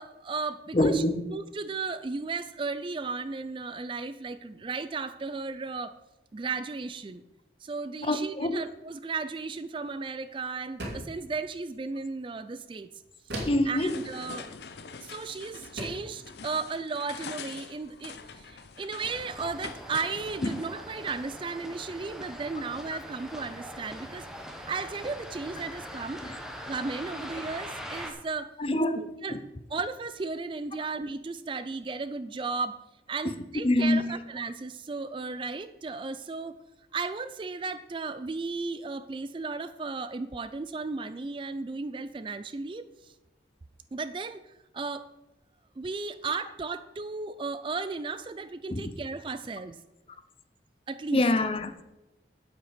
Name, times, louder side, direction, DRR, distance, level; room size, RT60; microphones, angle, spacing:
voice 1, 0.0-1.0 1.3-5.9 6.3-7.2 7.6-12.9 13.3-14.5 15.0-26.2 26.7-28.5 29.0-29.4 29.7-32.8 33.1-36.6 36.9-43.1 43.9-45.1 45.8-49.8 50.9-51.2, right 4 dB, 30° right, 0.3 m, -35 dB
voice 2, 0.7-1.2 8.0-8.6 13.5-14.0 20.4-20.5 22.9-23.0 26.2-26.4 28.6-29.0 29.3-29.4 33.6-34.1 48.7-48.9 51.1-51.7, left 1 dB, 30° left, 0.6 m, -25 dB
sound 1, 10.8-11.2 13.3-13.7 15.1-15.2 15.8-16.1, right 1 dB, 80° right, 2.5 m, -36 dB
sound 2, 13.7-20.7, left 5 dB, 70° left, 0.7 m, -44 dB
sound 3, 19.0-28.1, equal, 5° right, 1.0 m, -42 dB
8.8 x 8.1 x 5.0 m
head